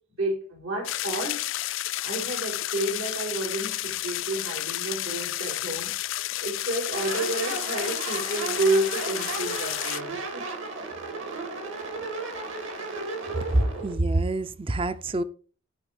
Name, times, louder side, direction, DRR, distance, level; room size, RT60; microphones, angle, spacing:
voice 1, 0.2-1.5 2.0-10.5, right 2 dB, 85° right, 5.2 m, -30 dB
sound 1, 0.8-10.0, left 15 dB, 65° left, 0.4 m, -31 dB
sound 2, 6.9-13.9, right 3 dB, 65° right, 3.0 m, -34 dB
voice 2, 13.5-15.2, right 2 dB, 25° right, 0.5 m, -25 dB
14.5 x 5.1 x 5.1 m
head